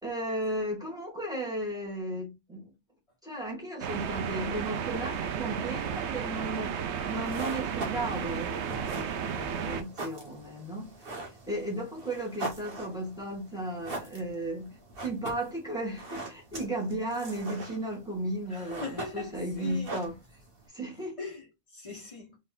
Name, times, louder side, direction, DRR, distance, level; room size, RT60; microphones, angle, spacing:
voice 1, 0.0-2.7 3.2-6.8 7.1-20.2 20.7-21.3, right 1 dB, 5° right, 2.1 m, -35 dB
sound 1, 3.8-9.8, right 8 dB, 85° right, 0.9 m, -33 dB
sound 2, 7.1-20.7, right 2 dB, 60° right, 1.5 m, -42 dB
voice 2, 18.5-19.9 21.2-22.4, left 4 dB, 30° left, 1.5 m, -40 dB
4.1 x 3.6 x 2.5 m
omnidirectional pair, 1.1 m